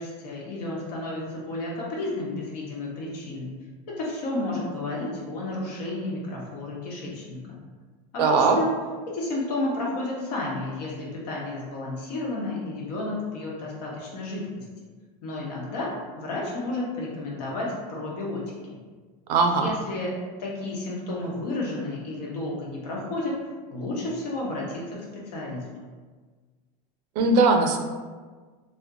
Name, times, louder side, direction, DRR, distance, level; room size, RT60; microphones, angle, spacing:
voice 1, 0.0-3.6 4.0-7.6 8.1-8.7 9.1-14.6 15.2-18.8 19.5-20.1 20.4-23.4 23.7-25.6, left 2 dB, 85° left, -3 dB, 0.9 m, -32 dB
voice 2, 8.2-8.6 19.3-19.7 27.2-27.8, right 3 dB, 85° right, 4 dB, 0.5 m, -19 dB
2.4 x 2.1 x 3.5 m, 1.4 s
supercardioid pair, 170°, 20 cm